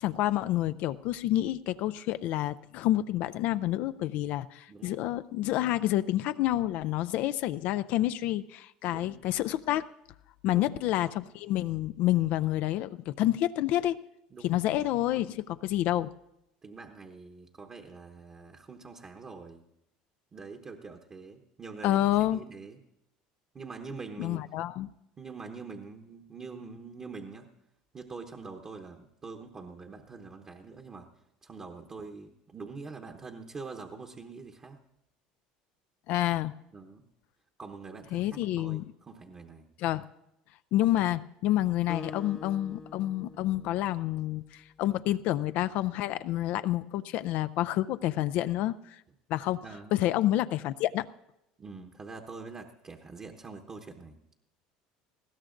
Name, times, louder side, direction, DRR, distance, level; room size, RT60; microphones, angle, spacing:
voice 1, 0.0-9.9 10.4-14.0 14.4-16.1 21.8-22.4 24.2-24.9 36.1-36.5 38.1-38.8 39.8-40.0 40.7-49.0 49.3-49.6 49.9-51.1, left 14 dB, 65° left, 12 dB, 0.4 m, -28 dB
voice 2, 8.8-9.2 10.5-10.7 14.3-14.6 16.6-19.6 20.3-22.8 23.5-24.4 25.2-27.5 27.9-31.1 31.4-34.8 36.7-37.0 37.6-39.7 49.6-50.0 51.6-54.2, right 4 dB, 30° right, 2 dB, 1.1 m, -44 dB
Acoustic guitar, 41.9-44.7, left 3 dB, 20° left, 0.9 m, -46 dB
20.0 x 15.5 x 2.6 m, 0.83 s
hypercardioid pair, 85°, 3 cm